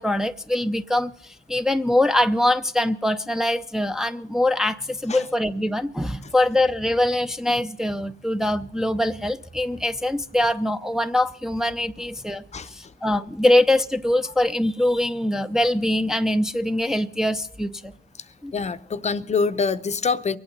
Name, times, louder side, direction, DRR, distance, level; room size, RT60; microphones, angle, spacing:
voice 1, 0.0-17.9 18.4-18.5, left 1 dB, ahead, 7 dB, 0.5 m, -23 dB
voice 2, 18.5-20.4, left 5 dB, 35° left, 12 dB, 0.7 m, -25 dB
23.5 x 8.8 x 5.4 m, 0.64 s
cardioid pair, 90°, 20 cm